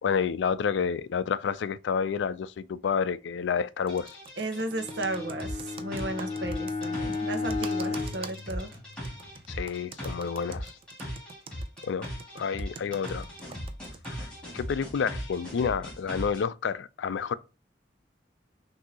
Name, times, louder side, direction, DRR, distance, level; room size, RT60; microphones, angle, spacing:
voice 1, 0.0-4.2 7.9-8.0 9.5-10.7 11.8-12.1 12.3-13.3 14.1-14.3 14.5-17.3, left 6 dB, 80° left, 0.4 m, -29 dB
sound 1, 3.9-16.4, equal, 5° left, 2.3 m, -39 dB
Computer keyboard, 3.9-14.1, right 5 dB, 30° right, 0.4 m, -45 dB
voice 2, 4.4-8.8, right 1 dB, 65° right, 0.9 m, -34 dB
Bowed string instrument, 4.6-9.3, left 3 dB, 35° left, 0.7 m, -34 dB
6.1 x 2.7 x 2.8 m
head